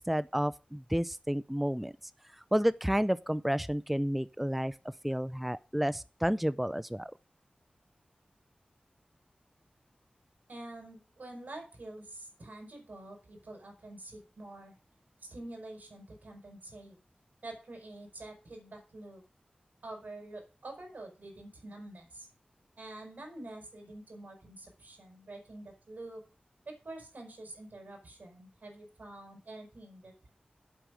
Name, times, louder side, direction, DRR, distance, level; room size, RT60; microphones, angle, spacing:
voice 1, 0.0-1.9 2.5-4.7 5.0-7.1, equal, 5° right, 0.5 m, -30 dB
voice 2, 10.5-14.7 15.2-17.0 17.4-19.2 19.8-22.3 22.8-26.2 26.6-30.3, right 2 dB, 75° right, 5.1 m, -47 dB
8.3 x 7.7 x 6.3 m
cardioid pair, 45°, 3 cm